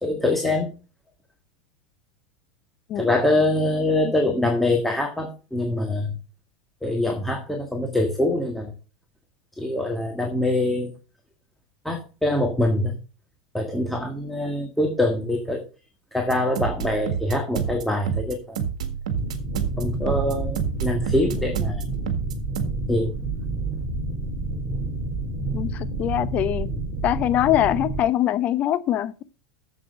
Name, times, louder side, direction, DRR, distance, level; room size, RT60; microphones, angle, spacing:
voice 1, 0.0-0.7 2.9-6.2 6.8-8.7 9.6-10.9 11.8-12.9 13.5-15.6 16.1-18.6 19.8-21.8 22.9-23.1, left 1 dB, 5° left, 1.6 m, -24 dB
sound 1, 16.3-22.7, right 8 dB, 70° right, 1.7 m, -28 dB
sound 2, 19.1-28.0, right 2 dB, 25° right, 3.7 m, -29 dB
voice 2, 25.5-26.7 27.0-29.2, left 12 dB, 40° left, 0.8 m, -23 dB
7.7 x 7.5 x 5.2 m
hypercardioid pair, 85°, 4 cm